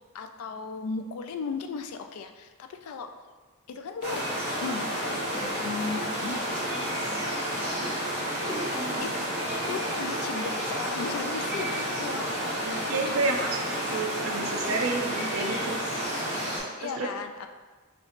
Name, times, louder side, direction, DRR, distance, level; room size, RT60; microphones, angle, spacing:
voice 1, 0.1-3.1 3.7-4.3 4.6-6.6 8.7-9.2 9.7-12.3 12.5-14.0 16.8-17.5, left 5 dB, 80° left, 7 dB, 0.3 m, -36 dB
sound 1, 4.0-16.6, equal, 35° right, 1.4 m, -31 dB
Laughter, 5.3-9.6, right 1 dB, 15° left, 0.5 m, -43 dB
voice 2, 12.6-13.6 13.9-15.8 17.0-17.1, right 3 dB, 70° right, 2 dB, 0.5 m, -30 dB
3.3 x 2.9 x 3.9 m, 1.3 s
head